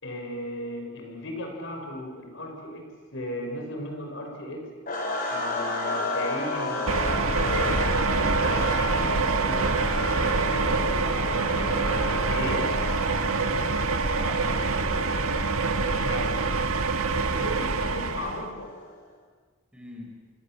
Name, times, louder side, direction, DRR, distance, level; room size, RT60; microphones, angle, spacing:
voice 1, 0.0-4.7 5.3-9.8 10.4-11.7 12.3-12.7 15.9-16.5 17.1-18.8, left 1 dB, 60° left, 3 dB, 5.4 m, -36 dB
sound 1, 4.9-19.0, left 2 dB, 40° left, 5.0 m, -33 dB
sound 2, 6.9-18.5, right 4 dB, 90° right, 1.8 m, -25 dB
voice 2, 10.8-11.7 14.0-14.8 19.7-20.2, equal, 5° right, -1 dB, 5.8 m, -42 dB
28.5 x 25.0 x 7.4 m, 1.4 s
head